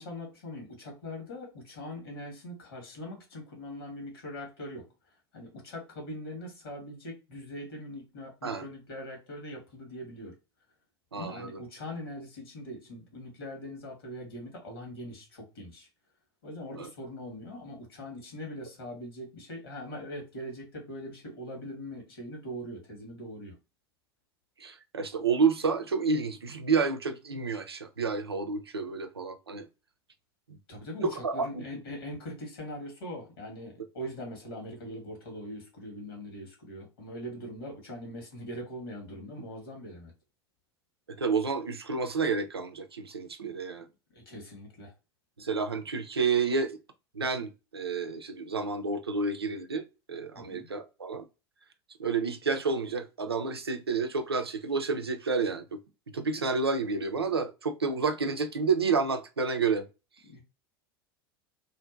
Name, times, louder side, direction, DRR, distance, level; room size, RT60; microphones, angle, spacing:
voice 1, 0.0-10.4 11.1-15.9 16.4-23.6 30.7-40.1 44.1-44.9 50.3-50.7 60.2-60.4, equal, 70° left, 1.4 m, -42 dB
voice 2, 11.1-11.5 16.8-16.9 24.6-29.7 31.0-31.6 41.1-43.8 45.4-46.8 47.1-51.3 52.0-55.8 56.1-59.8, right 4 dB, 90° right, 0.4 m, -30 dB
2.6 x 2.6 x 2.4 m
figure-of-eight pair, 80°, 13 cm